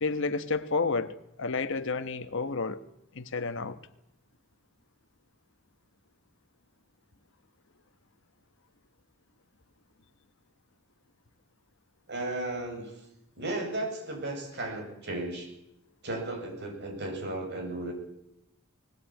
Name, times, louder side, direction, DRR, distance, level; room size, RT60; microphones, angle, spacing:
voice 1, 0.0-2.8 3.1-3.8, left 4 dB, 60° left, 1.1 m, -30 dB
voice 2, 12.1-12.9 13.4-15.5 16.0-17.9, right 2 dB, 55° right, 7.2 m, -34 dB
20.5 x 18.5 x 9.1 m
head